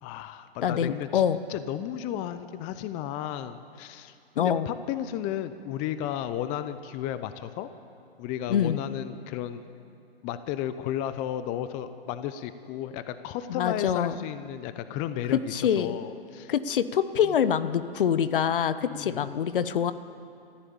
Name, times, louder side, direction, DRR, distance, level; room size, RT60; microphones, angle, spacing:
voice 1, 0.0-1.2 1.5-7.7 8.2-9.6 10.2-16.5 18.8-19.2, left 11 dB, 25° left, 12 dB, 0.7 m, -33 dB
voice 2, 0.6-1.4 4.4-4.7 8.5-8.8 13.5-14.2 15.3-15.9 16.5-19.9, left 8 dB, 60° left, 13 dB, 1.0 m, -25 dB
25.5 x 14.5 x 7.2 m, 2.5 s
hypercardioid pair, 125°, 30 cm